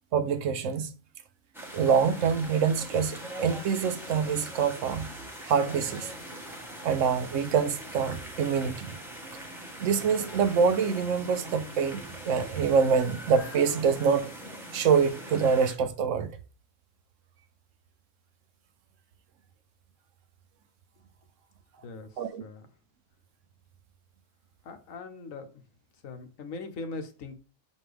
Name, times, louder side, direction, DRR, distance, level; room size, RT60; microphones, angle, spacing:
voice 1, 0.1-0.9 1.7-5.1 5.5-6.1 6.8-9.0 9.8-14.3 14.7-16.3 22.2-22.4, right 6 dB, 75° right, 1.0 m, -25 dB
sound 1, 1.5-15.8, right 1 dB, ahead, 1.0 m, -42 dB
voice 2, 24.6-25.5 26.0-27.4, left 3 dB, 85° left, 1.3 m, -40 dB
7.2 x 4.3 x 3.4 m
omnidirectional pair, 1.4 m